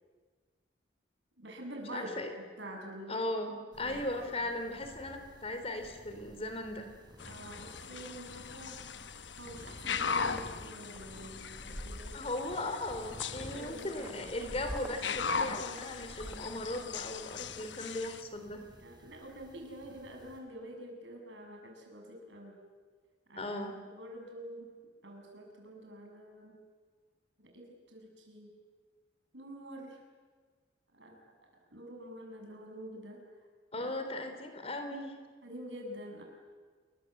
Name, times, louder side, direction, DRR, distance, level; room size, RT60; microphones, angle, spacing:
voice 1, 1.4-2.1 2.6-3.2 3.8-4.5 7.3-8.8 9.4-12.2 13.3-14.3 18.8-22.6 23.3-23.6 23.9-24.7 25.0-26.6 27.4-28.5 29.3-30.0 30.9-33.3 33.7-33.9 35.4-36.2, right 1 dB, 75° right, 2 dB, 7.4 m, -47 dB
voice 2, 1.9-2.3 3.1-6.9 12.1-18.6 23.4-23.8 33.7-35.1, left 1 dB, 30° left, 7 dB, 3.5 m, -37 dB
sound 1, 3.7-20.4, equal, 25° right, 4.6 m, -53 dB
sound 2, 7.2-18.2, left 5 dB, 75° left, 1.1 m, -39 dB
sound 3, 9.7-10.5 11.0-11.2 11.5-12.6 12.9-16.6, equal, ahead, 1.7 m, -46 dB
29.0 x 23.0 x 8.0 m, 1.5 s
head